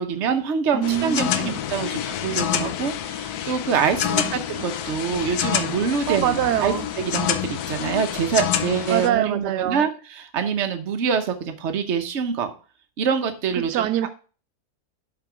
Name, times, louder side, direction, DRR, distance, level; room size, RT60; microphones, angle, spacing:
voice 1, 0.0-12.5 13.0-13.9, right 6 dB, 50° right, 1.1 m, -25 dB
voice 2, 0.7-1.6 4.1-4.3 6.1-6.9 8.9-9.8 13.6-14.1, right 11 dB, 90° right, 1.2 m, -24 dB
sound 1, 0.8-9.1, left 10 dB, 75° left, 1.1 m, -27 dB
7.3 x 4.6 x 4.9 m
omnidirectional pair, 1.7 m